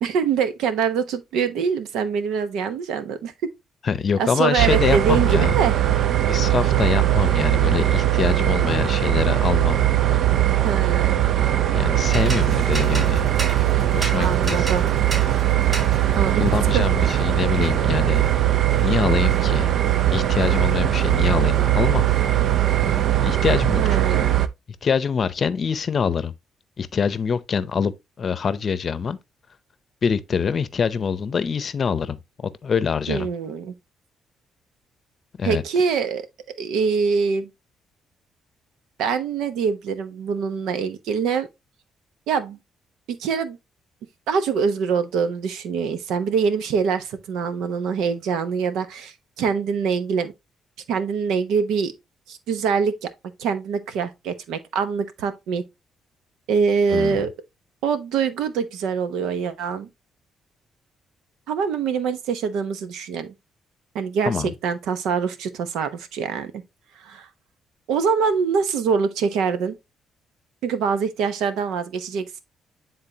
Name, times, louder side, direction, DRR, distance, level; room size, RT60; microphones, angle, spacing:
voice 1, 0.0-3.5 4.2-5.7 10.6-11.2 14.2-14.8 16.2-16.4 16.7-16.8 23.8-24.3 33.1-33.7 35.4-36.2 36.6-37.5 39.0-41.5 42.3-42.6 43.1-43.6 44.3-50.3 50.9-51.9 52.3-53.1 53.4-55.6 56.5-57.3 57.8-59.9 61.5-63.3 63.9-66.5 67.0-67.3 67.9-69.8 70.6-72.4, right 6 dB, 90° right, 0.9 m, -24 dB
voice 2, 3.8-5.5 6.3-10.2 11.7-13.3 13.9-14.7 16.4-18.2 18.8-19.7 20.1-22.0 22.3-22.4 23.2-24.2 24.8-26.3 26.8-27.9 28.2-29.2 30.0-32.2 32.6-33.3 35.4-35.6 56.9-57.2 64.3-64.5, left 6 dB, 45° left, 0.7 m, -24 dB
sound 1, 4.6-24.5, right 12 dB, 65° right, 0.5 m, -20 dB
sound 2, 12.1-21.8 22.1-23.3, right 2 dB, 35° right, 3.3 m, -37 dB
9.8 x 3.8 x 2.8 m
cardioid pair, 90°, 0 cm